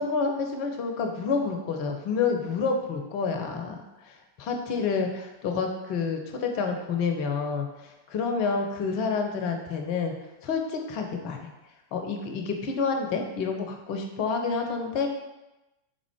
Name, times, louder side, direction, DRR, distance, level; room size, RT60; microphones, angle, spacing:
voice 1, 0.0-3.8 4.4-10.1 10.4-11.4 11.9-15.1, left 5 dB, 45° left, 4 dB, 0.6 m, -28 dB
3.8 x 3.7 x 3.5 m, 0.99 s
figure-of-eight pair, 90°, 0 cm